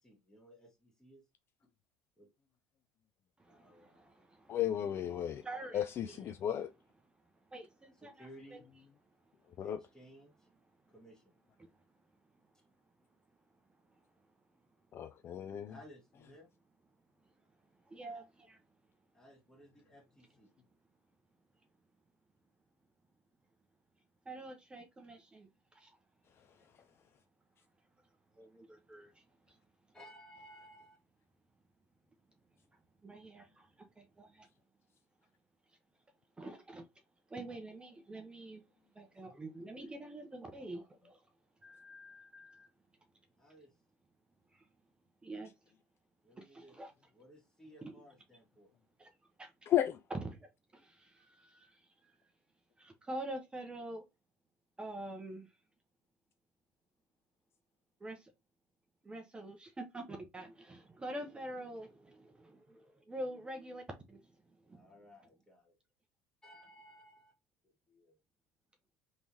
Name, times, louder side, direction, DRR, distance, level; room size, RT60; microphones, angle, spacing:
voice 1, 0.0-1.2 2.2-2.3 3.5-4.1 8.0-8.6 9.6-10.5 10.9-11.3 15.6-16.5 19.1-20.5 26.5-26.6 29.9-31.0 43.4-43.7 46.2-46.8 47.1-48.7 64.7-65.7 66.4-67.3 67.9-68.2, equal, 10° left, 1.8 m, -58 dB
voice 2, 3.4-4.6 5.4-6.2 7.5-8.6 11.6-11.7 17.9-18.6 24.3-26.0 28.4-29.6 33.0-33.7 34.0-34.5 36.4-36.9 37.3-38.6 38.9-41.2 41.6-42.7 44.5-44.7 45.2-45.5 46.4-46.9 47.8-47.9 49.0-49.1 49.4-49.5 50.4-52.2 52.8-54.0 54.8-55.5 58.0-58.3 59.0-63.8 64.1-64.3 64.7-64.9, right 1 dB, 15° right, 0.7 m, -47 dB
voice 3, 4.5-5.4 5.7-6.7 9.6-9.8 14.9-15.8 26.4-26.5 49.7-50.0, left 11 dB, 40° left, 0.3 m, -34 dB
3.4 x 3.1 x 2.7 m
supercardioid pair, 105°, 6 cm